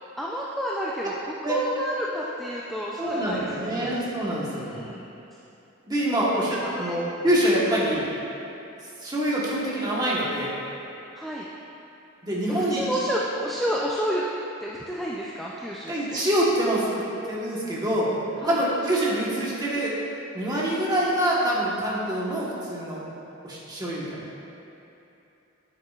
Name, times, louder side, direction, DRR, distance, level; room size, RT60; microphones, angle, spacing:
voice 1, 0.2-3.9 4.4-5.1 6.2-7.0 7.7-7.9 11.2-11.5 12.5-14.2 14.6-16.2 18.4-18.6, equal, ahead, -5 dB, 0.4 m, -31 dB
voice 2, 3.0-4.8 5.9-8.0 9.0-10.5 12.2-12.8 15.9-16.9 17.2-18.1 18.4-19.9 20.3-23.0 23.4-24.2, right 1 dB, 20° right, -6 dB, 1.3 m, -25 dB
9.3 x 8.3 x 2.4 m, 3.0 s
head